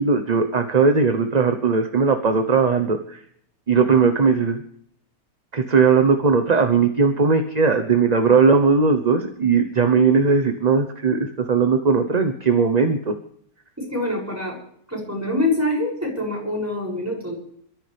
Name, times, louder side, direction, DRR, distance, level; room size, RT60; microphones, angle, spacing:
voice 1, 0.0-3.2 3.7-4.6 5.5-13.1, right 5 dB, 30° right, 6 dB, 1.0 m, -18 dB
voice 2, 13.8-14.6 14.9-17.3, left 2 dB, 10° right, -4 dB, 7.0 m, -25 dB
28.0 x 13.5 x 3.5 m, 0.67 s
omnidirectional pair, 1.6 m